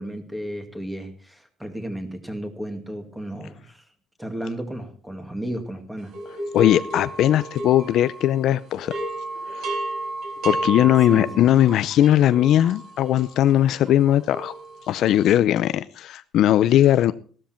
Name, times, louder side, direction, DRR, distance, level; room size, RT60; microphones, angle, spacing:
voice 1, 0.0-3.8 4.2-6.1 11.1-11.4, right 1 dB, 5° right, 6 dB, 2.3 m, -33 dB
sound 1, 6.1-8.5 8.8-15.1, right 2 dB, 50° right, 4.2 m, -32 dB
voice 2, 6.5-8.9 9.5-9.8 10.4-14.5 14.9-17.1, left 12 dB, 55° left, 14 dB, 0.5 m, -19 dB
15.5 x 13.0 x 4.5 m, 0.42 s
cardioid pair, 145°, 0 cm